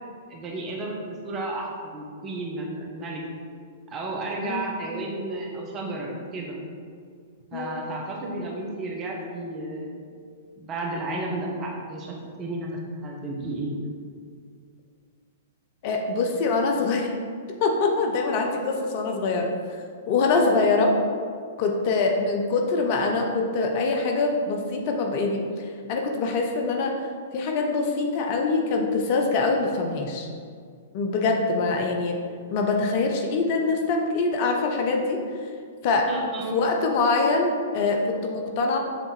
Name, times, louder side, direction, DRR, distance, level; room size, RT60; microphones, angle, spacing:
voice 1, 0.3-3.2 3.9-6.6 7.5-10.0 10.6-12.7 13.0-13.7 36.1-36.6, right 2 dB, 30° right, -1 dB, 1.4 m, -32 dB
voice 2, 15.8-17.1 17.6-19.5 20.1-21.0 21.6-25.4 25.9-27.0 27.3-30.3 30.9-32.2 32.5-35.2 35.8-36.1 36.5-38.8, left 3 dB, 45° left, 2 dB, 0.8 m, -24 dB
7.2 x 3.9 x 4.3 m, 2.1 s
figure-of-eight pair, 110°, 0 cm